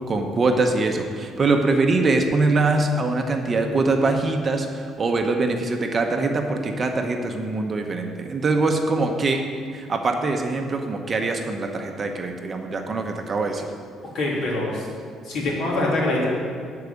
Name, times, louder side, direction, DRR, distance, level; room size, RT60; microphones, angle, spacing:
voice 1, 0.1-9.4 9.7-13.7, right 3 dB, 25° right, 4 dB, 0.8 m, -23 dB
voice 2, 14.1-14.9 15.2-16.3, left 2 dB, 60° left, -4 dB, 3.0 m, -24 dB
12.0 x 4.8 x 8.0 m, 2.2 s
cardioid pair, 155°, 0 cm